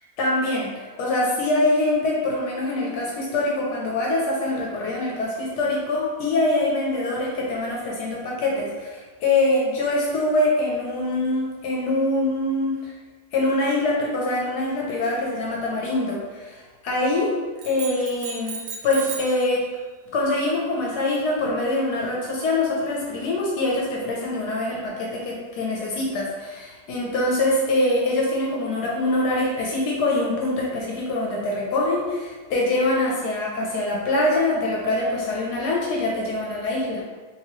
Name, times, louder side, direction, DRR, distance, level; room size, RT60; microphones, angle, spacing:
voice 1, 0.2-12.7 13.3-17.3 17.6-19.6 20.1-37.0, left 2 dB, 75° left, -3 dB, 1.2 m, -24 dB
sound 1, 17.6-19.4, right 6 dB, 80° right, 1.2 m, -35 dB
3.4 x 2.9 x 2.9 m, 1.4 s
omnidirectional pair, 1.8 m